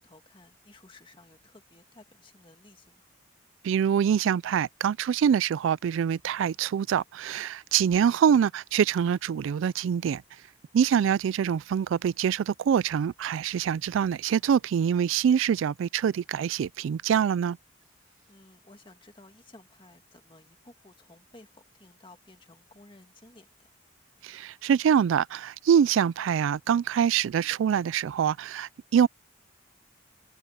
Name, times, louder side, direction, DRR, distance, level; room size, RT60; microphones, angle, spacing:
voice 1, 0.0-3.1 18.0-23.7, left 2 dB, 25° left, 2.0 m, -55 dB
voice 2, 3.6-10.2 10.7-17.6 24.2-29.1, right 8 dB, 75° right, 0.3 m, -25 dB
head